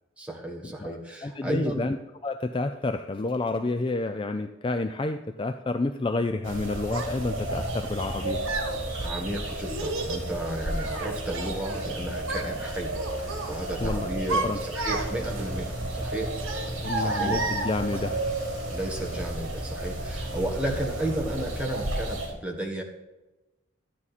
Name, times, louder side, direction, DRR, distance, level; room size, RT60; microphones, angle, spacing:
voice 1, 0.2-1.8 9.0-16.3 16.6-17.4 18.7-22.8, right 1 dB, 5° right, 0 dB, 1.5 m, -33 dB
voice 2, 0.8-2.0 2.2-8.4 13.8-14.1 14.4-14.6 16.7-18.2, left 2 dB, 25° left, 8 dB, 0.4 m, -29 dB
sound 1, 6.4-22.3, right 1 dB, 70° right, 3.4 m, -33 dB
Child speech kid speaking, 6.9-7.1 8.0-8.7 9.7-10.3 10.7-11.9 12.2-12.5 12.9-13.5 14.0-15.4 16.4-18.1, right 2 dB, 90° right, 1.7 m, -32 dB
sound 2, 8.9-9.2 10.6-11.8 13.2-14.1 14.9-16.3 17.9-19.4 20.3-21.2, left 1 dB, 45° left, 4.6 m, -53 dB
12.0 x 9.7 x 4.2 m, 1.1 s
head